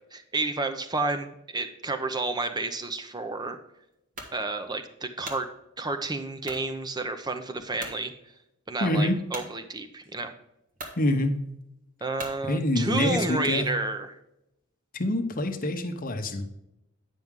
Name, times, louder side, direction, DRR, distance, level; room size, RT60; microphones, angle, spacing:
voice 1, 0.1-3.6 4.3-5.5 5.8-8.1 8.7-10.3 12.0-14.1, right 3 dB, 20° right, 8 dB, 0.7 m, -30 dB
sound 1, 4.2-4.4 5.0-5.5 6.4-6.7 7.2-7.3 7.8-8.0 9.3-9.5 10.3-10.4 10.7-11.0 12.2-12.4, right 2 dB, 40° right, 1.6 m, -39 dB
voice 2, 8.8-9.2 11.0-11.4 12.4-13.7 14.9-16.5, left 1 dB, 40° left, 5 dB, 0.9 m, -26 dB
9.5 x 5.9 x 3.7 m, 0.84 s
head